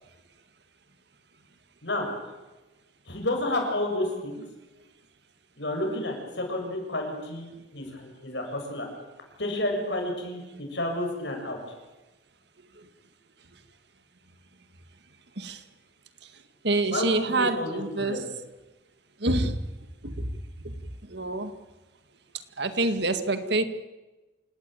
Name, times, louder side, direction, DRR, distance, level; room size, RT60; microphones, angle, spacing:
voice 1, 3.1-4.4 5.6-8.9 9.4-11.6 16.9-18.2, left 1 dB, 65° left, 2 dB, 7.4 m, -30 dB
voice 2, 16.6-18.2 19.2-19.6 20.0-20.3 21.1-21.5 22.6-23.6, right 2 dB, 60° right, 10 dB, 2.0 m, -26 dB
28.0 x 18.0 x 9.2 m, 1.1 s
head